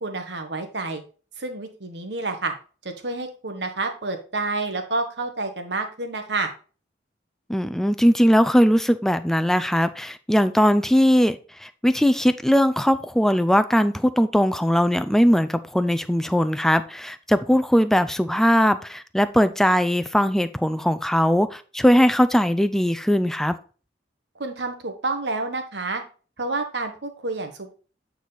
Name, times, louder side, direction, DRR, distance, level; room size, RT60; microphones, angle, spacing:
voice 1, 0.0-1.0 1.4-2.5 2.8-6.5 24.4-26.0 26.4-27.7, right 3 dB, 70° right, 1.4 m, -29 dB
voice 2, 7.5-23.6, equal, ahead, 0.4 m, -20 dB
8.5 x 4.7 x 4.1 m
head